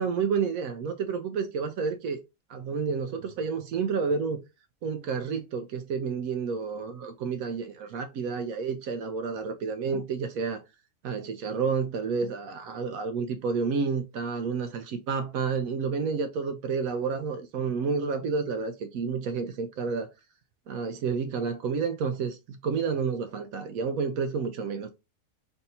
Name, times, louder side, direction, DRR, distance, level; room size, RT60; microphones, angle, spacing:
voice 1, 0.0-2.2 2.5-4.4 4.8-10.6 11.0-20.1 20.7-24.9, right 5 dB, 70° right, 0.9 m, -30 dB
3.4 x 2.6 x 4.0 m
omnidirectional pair, 1.6 m